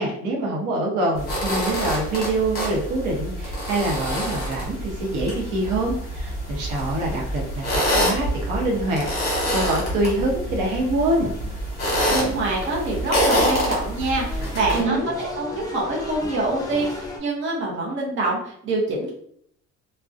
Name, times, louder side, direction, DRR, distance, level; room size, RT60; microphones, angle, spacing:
voice 1, 0.0-11.3 14.7-15.1, right 2 dB, 80° right, -1 dB, 0.8 m, -25 dB
sound 1, 1.2-14.8, equal, 35° left, 1.0 m, -26 dB
sound 2, 3.1-17.2, left 1 dB, 15° left, 0.3 m, -40 dB
voice 2, 12.1-19.1, right 2 dB, 40° right, -3 dB, 0.7 m, -25 dB
2.4 x 2.1 x 2.4 m, 0.66 s
cardioid pair, 165°, 29 cm